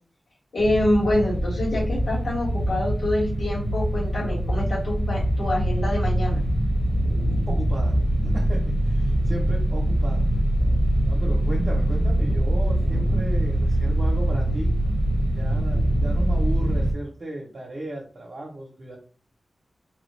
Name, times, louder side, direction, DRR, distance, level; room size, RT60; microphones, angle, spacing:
voice 1, 0.5-6.4, left 1 dB, 75° left, -8 dB, 1.7 m, -26 dB
sound 1, 0.6-16.9, right 1 dB, 25° left, 1.0 m, -23 dB
voice 2, 7.5-10.3 11.0-14.8 15.2-19.0, right 1 dB, 50° right, -3 dB, 0.8 m, -35 dB
3.3 x 2.3 x 3.2 m, 0.40 s
wide cardioid pair, 95°, 0 cm